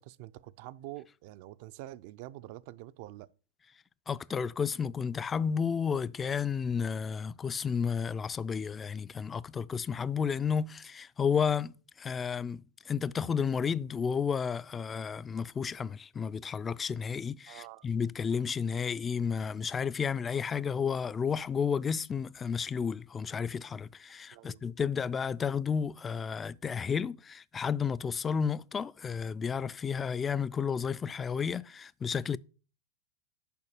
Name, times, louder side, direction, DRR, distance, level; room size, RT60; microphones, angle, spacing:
voice 1, 0.0-3.3 17.5-17.9 24.3-24.6, right 16 dB, 55° right, 0.4 m, -46 dB
voice 2, 4.1-32.4, left 6 dB, 20° left, 0.3 m, -32 dB
6.9 x 5.0 x 6.5 m
hypercardioid pair, 120°, 0 cm